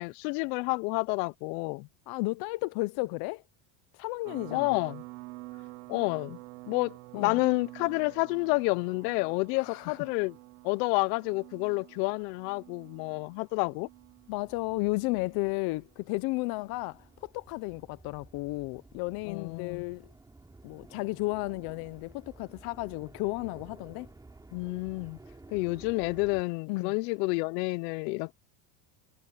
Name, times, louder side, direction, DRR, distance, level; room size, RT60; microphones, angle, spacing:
voice 1, 0.0-1.9 4.5-5.0 5.9-6.4 6.7-10.3 10.6-13.9 19.3-19.8 24.5-25.2 25.5-28.3, left 27 dB, 90° left, 0.7 m, -29 dB
voice 2, 2.1-3.4 3.9-4.8 7.1-7.4 9.6-10.0 14.3-20.1 20.6-24.1 26.7-27.0, left 23 dB, 50° left, 0.6 m, -33 dB
sound 1, 4.2-17.2, right 22 dB, 85° right, 1.1 m, -49 dB
sound 2, 9.8-10.1 10.7-26.4, right 2 dB, 5° right, 3.8 m, -54 dB
cardioid pair, 165°, 48 cm